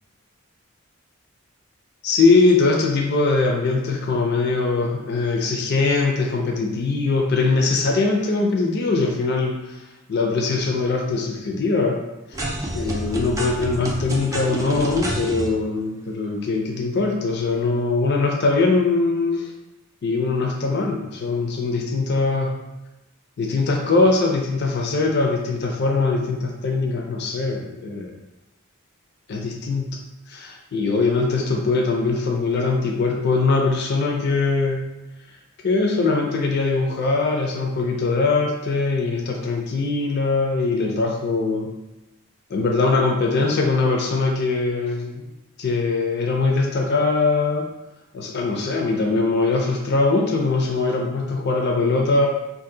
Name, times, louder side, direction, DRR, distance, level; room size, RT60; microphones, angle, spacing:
voice 1, 2.0-9.8 10.1-12.0 12.3-12.4 12.7-19.5 20.0-22.5 23.4-28.1 29.3-30.0 30.3-34.9 35.6-41.7 42.5-45.2 45.6-47.7 48.1-52.3, left 3 dB, 50° left, 1 dB, 0.4 m, -21 dB
sound 1, 12.3-15.5, right 1 dB, 15° right, 0.4 m, -28 dB
2.7 x 2.5 x 3.8 m, 0.99 s
head